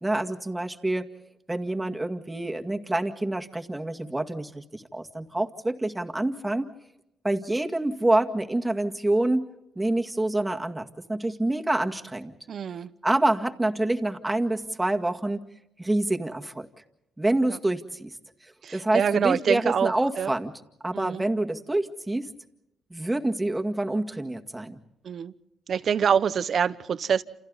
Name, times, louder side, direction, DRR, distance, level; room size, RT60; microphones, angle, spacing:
voice 1, 0.0-1.1 1.5-6.7 7.2-12.3 13.0-15.4 15.8-16.7 17.2-18.2 18.4-20.5 20.8-22.3 22.9-24.8, right 1 dB, 10° right, 4 dB, 2.0 m, -27 dB
voice 2, 12.5-12.9 17.5-17.6 18.6-20.3 20.9-21.2 25.0-25.3 25.7-27.2, right 7 dB, 60° right, 15 dB, 0.9 m, -25 dB
28.5 x 28.5 x 4.1 m, 0.82 s
cardioid pair, 70°, 0 cm